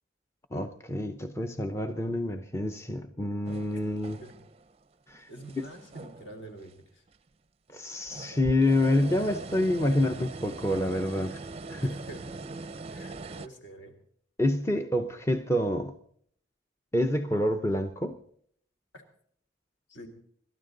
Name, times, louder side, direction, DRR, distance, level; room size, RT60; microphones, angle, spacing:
voice 1, 0.5-4.2 5.1-5.3 7.7-11.4 11.7-12.0 14.4-15.9 16.9-18.2, left 1 dB, 15° left, 6 dB, 0.7 m, -27 dB
sound 1, 3.5-4.7 5.1-6.7 7.1-7.2 7.9-13.5, right 3 dB, 30° right, 0.5 m, -42 dB
voice 2, 3.7-4.3 5.3-7.0 8.3-8.5 9.0-9.2 11.8-12.2 12.9-13.9 19.9-20.1, right 1 dB, 65° left, 4 dB, 3.5 m, -47 dB
27.0 x 12.5 x 3.9 m, 0.64 s
head